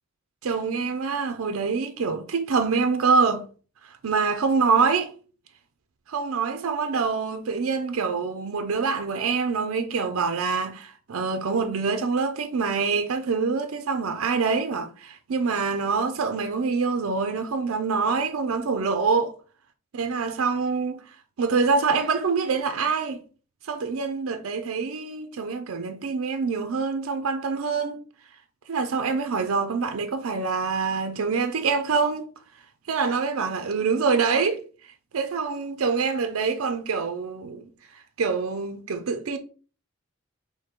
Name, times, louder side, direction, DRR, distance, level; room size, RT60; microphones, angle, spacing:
voice 1, 0.4-3.4 4.0-5.1 6.1-19.3 19.9-21.0 21.4-23.2 23.7-28.0 28.7-32.3 32.9-34.6 35.1-37.7 37.9-39.4, right 5 dB, 80° right, 0.5 m, -25 dB
3.7 x 2.8 x 4.3 m
head